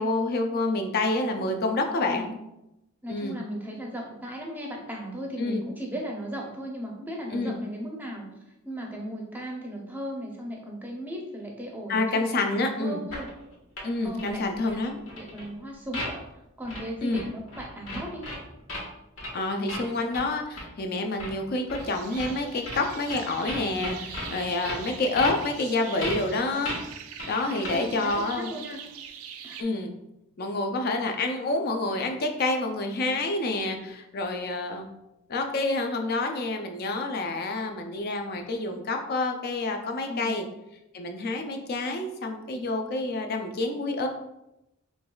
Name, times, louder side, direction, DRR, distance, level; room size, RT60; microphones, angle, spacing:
voice 1, 0.0-2.3 3.1-3.4 5.4-5.6 7.3-7.6 11.9-13.0 13.8-15.0 17.0-17.2 19.3-26.8 27.3-28.5 29.6-29.9 30.4-34.9 35.3-40.4 40.9-44.1, left 2 dB, 45° left, 4 dB, 0.4 m, -28 dB
voice 2, 2.1-2.4 3.0-8.3 8.6-13.3 14.0-14.4 14.7-14.8 15.1-16.2 16.6-18.2 27.4-28.8 29.4-29.7 40.1-40.4, equal, 10° right, -1 dB, 0.6 m, -36 dB
sound 1, 13.1-15.5 15.9-16.1 16.6-16.8 17.1-18.8 19.2-19.3 19.7-19.9 20.1-20.2 20.6-20.7 21.2-21.3 21.7-21.8 22.2-22.3 22.6-23.2 23.5-24.3 24.6-24.8 25.2-25.3 26.0-26.2 26.6-26.8 27.2-27.3 27.6-27.7 28.0-28.2, left 1 dB, 70° left, 1.3 m, -35 dB
sound 2, 21.8-29.6, right 8 dB, 85° right, 0.3 m, -43 dB
4.6 x 3.1 x 2.3 m, 0.89 s
head